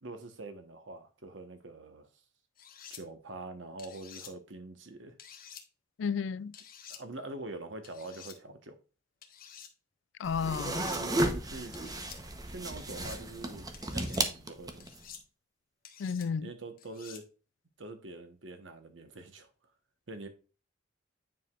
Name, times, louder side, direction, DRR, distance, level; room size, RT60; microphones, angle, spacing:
voice 1, 0.0-2.1 2.9-5.2 6.9-8.8 10.7-11.7 12.5-14.9 16.4-17.3 17.8-19.5 20.1-20.3, right 2 dB, 85° right, 1.3 m, -44 dB
sound 1, 2.6-3.0 3.8-4.3 5.2-5.6 6.5-7.0 7.8-8.4 9.2-9.7 10.5-11.0 11.7-12.2 12.8-13.2 13.7-14.2 14.8-15.2 15.8-16.3 16.8-17.2, left 8 dB, 50° left, 1.2 m, -50 dB
voice 2, 6.0-6.5 10.2-10.9 16.0-16.5, left 6 dB, 75° left, 0.4 m, -32 dB
sound 2, 10.2-15.0, right 1 dB, 20° right, 0.9 m, -34 dB
9.1 x 5.0 x 2.4 m
head